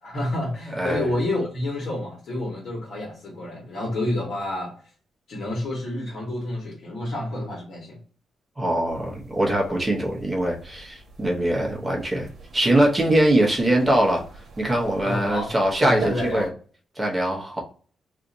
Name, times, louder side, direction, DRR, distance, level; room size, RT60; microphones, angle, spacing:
voice 1, 0.0-4.7 5.3-8.0 15.0-15.5 15.8-16.5, left 1 dB, 65° left, -3 dB, 1.1 m, -29 dB
voice 2, 0.7-1.1 8.6-14.2 14.6-16.5 17.0-17.6, right 1 dB, 20° right, -1 dB, 0.9 m, -22 dB
sound 1, 8.9-16.5, right 3 dB, 70° right, 0.9 m, -42 dB
2.5 x 2.5 x 4.1 m, 0.41 s
cardioid pair, 130°, 0 cm